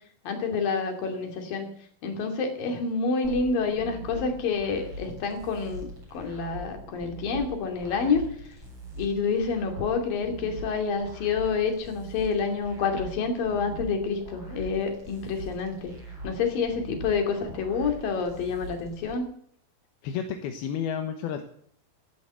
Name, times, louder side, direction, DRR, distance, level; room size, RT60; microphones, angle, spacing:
voice 1, 0.2-1.7 2.0-8.2 9.0-15.9 16.2-19.3, left 5 dB, 65° left, 4 dB, 4.2 m, -28 dB
sound 1, 3.2-19.1, right 1 dB, 30° right, 8.2 m, -42 dB
voice 2, 20.0-21.4, left 8 dB, 80° left, 5 dB, 3.1 m, -31 dB
15.5 x 11.0 x 8.1 m, 0.63 s
omnidirectional pair, 4.4 m